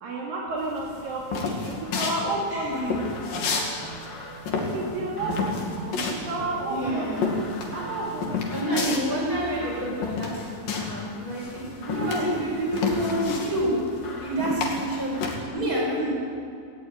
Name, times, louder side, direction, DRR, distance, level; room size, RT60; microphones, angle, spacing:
voice 1, 0.0-3.2 4.7-7.3 7.7-9.5 11.9-12.4, right 2 dB, 75° right, -3 dB, 4.2 m, -32 dB
sound 1, 0.7-3.7 4.0-11.1 11.3-15.4, left 4 dB, 70° left, 4.1 m, -30 dB
sound 2, 1.5-8.4, right 8 dB, 60° right, 1.7 m, -42 dB
sound 3, 1.7-15.5, left 3 dB, 40° left, 1.9 m, -46 dB
voice 2, 2.5-3.0 6.7-7.2 8.5-13.8 14.2-16.1, right 1 dB, 25° right, -4 dB, 8.1 m, -28 dB
18.0 x 17.5 x 9.1 m, 2.3 s
omnidirectional pair, 4.1 m